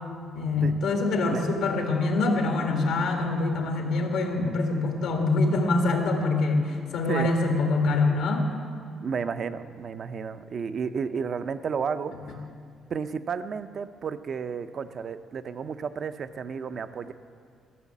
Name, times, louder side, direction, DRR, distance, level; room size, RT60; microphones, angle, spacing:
voice 1, 0.3-8.5, left 3 dB, 85° left, 2 dB, 1.7 m, -25 dB
voice 2, 9.0-12.5 12.9-17.1, right 6 dB, 55° right, 10 dB, 0.5 m, -32 dB
14.0 x 6.5 x 7.2 m, 2.2 s
cardioid pair, 90°, 0 cm